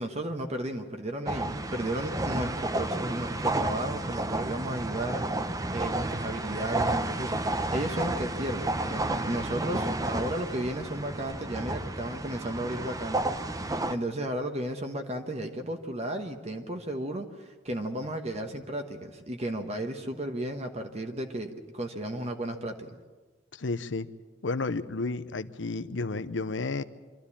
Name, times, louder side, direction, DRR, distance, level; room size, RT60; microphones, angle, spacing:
voice 1, 0.0-7.3 7.7-13.2 13.9-23.0, right 1 dB, 35° right, 5 dB, 1.2 m, -34 dB
sound 1, 1.3-14.0, right 2 dB, 20° right, 0.8 m, -31 dB
voice 2, 23.5-24.1 24.4-26.8, left 3 dB, 90° left, 13 dB, 0.8 m, -32 dB
25.5 x 13.0 x 8.5 m, 1.4 s
head